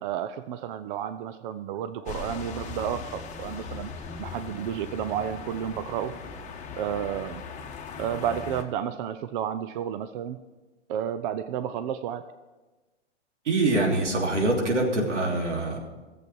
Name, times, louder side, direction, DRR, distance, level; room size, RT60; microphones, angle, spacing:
voice 1, 0.0-3.9 4.2-6.1 6.8-7.4 8.0-10.4 10.9-12.2, right 9 dB, 45° right, 11 dB, 0.6 m, -31 dB
sound 1, 2.1-8.6, left 5 dB, 20° left, 1.4 m, -39 dB
voice 2, 13.4-15.8, right 2 dB, 90° right, 0 dB, 3.2 m, -24 dB
14.5 x 7.8 x 6.2 m, 1.2 s
hypercardioid pair, 130°, 35 cm